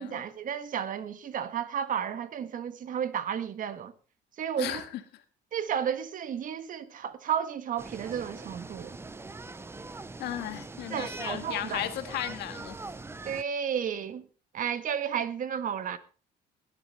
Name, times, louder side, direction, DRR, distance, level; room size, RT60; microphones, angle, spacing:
voice 1, 0.0-3.9 4.4-4.8 5.5-9.0 10.9-11.9 13.2-14.2 14.5-16.0, right 8 dB, 55° right, 1.5 m, -32 dB
sound 1, 7.8-13.4, right 3 dB, 15° right, 0.7 m, -42 dB
voice 2, 10.2-12.8, left 13 dB, 80° left, 1.8 m, -35 dB
17.5 x 11.0 x 4.2 m
cardioid pair, 110°, 17 cm